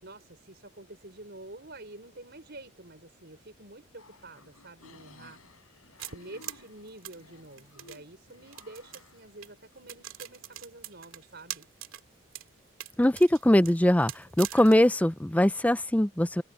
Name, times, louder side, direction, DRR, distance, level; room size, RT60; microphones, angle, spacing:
voice 1, 0.0-5.4 6.1-11.7, right 2 dB, 50° right, 5.7 m, -48 dB
sound 1, 4.0-10.6, left 3 dB, 85° left, 7.4 m, -56 dB
sound 2, 6.0-8.0 8.5-9.1 9.4-9.5 9.9-12.0 12.3-12.5 12.8-14.9, right 12 dB, 70° right, 2.2 m, -41 dB
voice 2, 13.0-16.4, left 1 dB, 5° left, 0.4 m, -22 dB
head